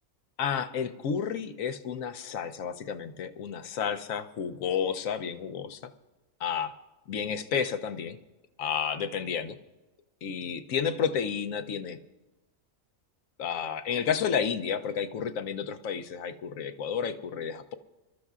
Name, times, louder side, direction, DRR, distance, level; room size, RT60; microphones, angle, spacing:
voice 1, 0.4-5.8 6.4-6.7 7.1-8.2 8.6-9.6 10.2-12.0 13.4-17.7, left 7 dB, 80° left, 8 dB, 1.1 m, -31 dB
27.5 x 13.0 x 2.4 m, 1.1 s
omnidirectional pair, 1.4 m